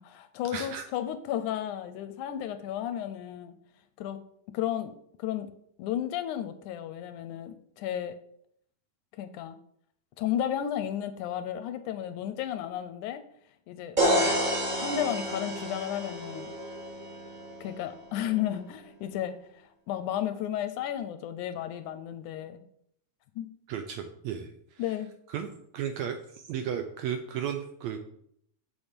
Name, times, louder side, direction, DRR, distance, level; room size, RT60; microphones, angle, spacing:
voice 1, 0.0-3.5 4.0-4.2 4.5-4.9 5.2-5.5 5.8-8.2 9.2-9.6 10.2-13.2 13.7-14.4 14.8-16.5 17.6-22.6 23.4-23.5 24.8-25.1, left 11 dB, 80° left, 10 dB, 1.9 m, -33 dB
voice 2, 0.5-0.9 23.7-24.8 25.3-25.5 25.7-28.0, right 8 dB, 75° right, 7 dB, 1.7 m, -34 dB
sound 1, 14.0-17.8, equal, 25° right, 1.2 m, -29 dB
7.5 x 7.1 x 5.2 m, 0.70 s
omnidirectional pair, 3.8 m